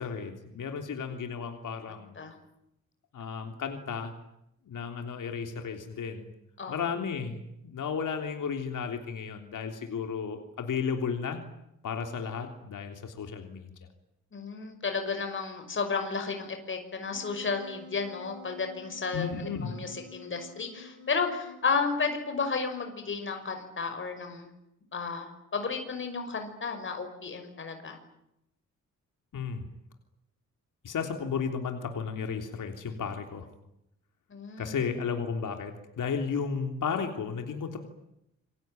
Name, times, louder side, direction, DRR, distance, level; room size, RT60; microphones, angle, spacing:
voice 1, 0.0-2.2 3.1-4.1 4.7-6.3 6.7-11.4 11.8-13.7 19.1-19.7 29.3-29.6 30.8-33.5 34.6-37.8, left 6 dB, 80° left, 5 dB, 3.4 m, -33 dB
voice 2, 14.3-19.3 19.6-24.5 24.9-28.0 34.3-34.8, left 5 dB, 40° left, 6 dB, 5.9 m, -33 dB
Wind instrument woodwind instrument, 17.2-22.6, left 2 dB, 35° right, 5.4 m, -50 dB
28.0 x 23.0 x 9.3 m, 0.82 s
wide cardioid pair, 170°, 31 cm